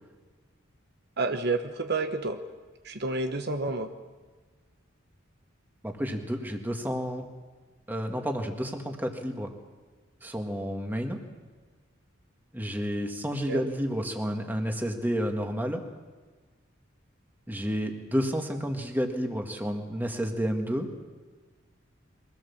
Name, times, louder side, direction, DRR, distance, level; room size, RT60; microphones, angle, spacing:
voice 1, 1.2-2.4 2.8-3.9 13.5-13.6, right 3 dB, 55° right, 6 dB, 1.0 m, -29 dB
voice 2, 5.8-7.2 7.9-9.5 10.2-11.2 12.5-15.8 17.5-20.9, equal, 10° right, 3 dB, 1.8 m, -30 dB
23.0 x 17.0 x 7.2 m, 1.4 s
head